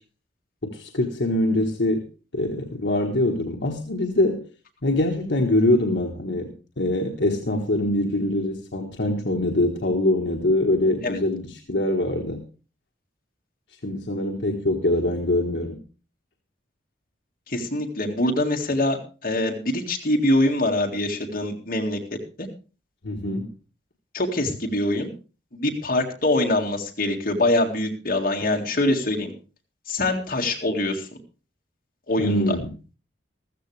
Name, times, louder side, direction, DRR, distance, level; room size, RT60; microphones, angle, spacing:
voice 1, 0.6-2.1 2.3-4.5 4.8-12.4 13.8-15.8 23.0-23.5 32.2-32.7, left 1 dB, 65° left, 1 dB, 1.4 m, -23 dB
voice 2, 17.5-22.0 22.4-22.5 24.1-25.1 25.5-29.3 29.9-31.1 32.1-32.6, left 1 dB, 45° left, 1 dB, 2.0 m, -24 dB
14.0 x 14.0 x 3.3 m, 0.34 s
head